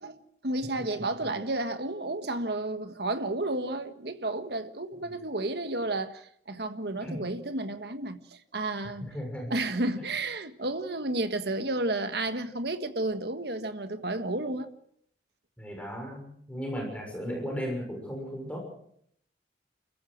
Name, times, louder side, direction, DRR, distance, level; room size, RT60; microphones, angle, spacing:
voice 1, 0.0-9.1 9.5-14.7, right 2 dB, 65° right, 1.5 m, -32 dB
voice 2, 9.0-9.5 15.6-18.6, equal, 5° left, 6.2 m, -35 dB
29.0 x 15.0 x 6.4 m
head